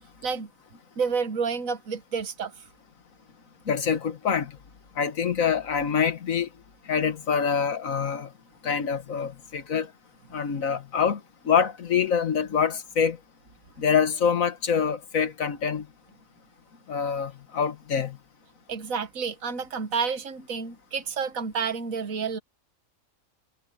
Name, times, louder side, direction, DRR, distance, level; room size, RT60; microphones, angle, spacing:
voice 1, 1.0-2.7 18.7-22.4, right 5 dB, 90° right, 1.7 m, -30 dB
voice 2, 3.7-4.5 5.0-6.5 6.9-8.3 8.6-9.9 10.3-11.2 11.5-13.2 13.8-15.9 16.9-18.2, left 7 dB, 85° left, 1.8 m, -25 dB
omnidirectional pair, 1.4 m